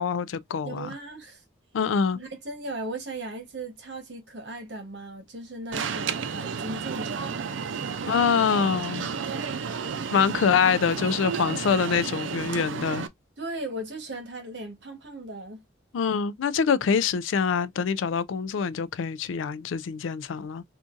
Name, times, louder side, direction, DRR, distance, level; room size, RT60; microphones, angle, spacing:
voice 1, 0.0-0.9 1.7-2.2 8.1-9.1 10.1-13.1 15.9-20.6, left 6 dB, 90° left, 0.4 m, -25 dB
voice 2, 0.6-1.4 2.1-7.4 13.4-15.6, right 2 dB, 65° right, 1.1 m, -37 dB
Alarm, 5.7-13.1, right 6 dB, 85° right, 0.5 m, -32 dB
3.7 x 2.5 x 2.5 m
head